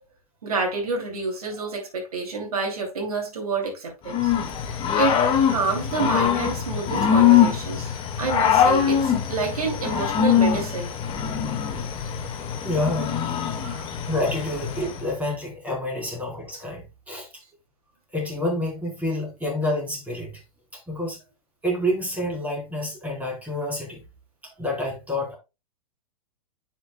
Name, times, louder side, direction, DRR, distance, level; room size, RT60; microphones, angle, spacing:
voice 1, 0.4-4.3 4.9-5.2 5.5-10.9 12.0-12.1 13.6-13.9, right 4 dB, 75° right, 2.8 m, -28 dB
Growling / Cricket, 4.1-15.0, left 8 dB, 30° left, 1.8 m, -23 dB
voice 2, 12.6-13.2 14.1-17.3 18.1-20.4 20.7-21.2 21.6-24.0 24.6-25.3, left 1 dB, 10° right, 4.1 m, -28 dB
9.6 x 6.0 x 2.2 m
figure-of-eight pair, 105°, 19 cm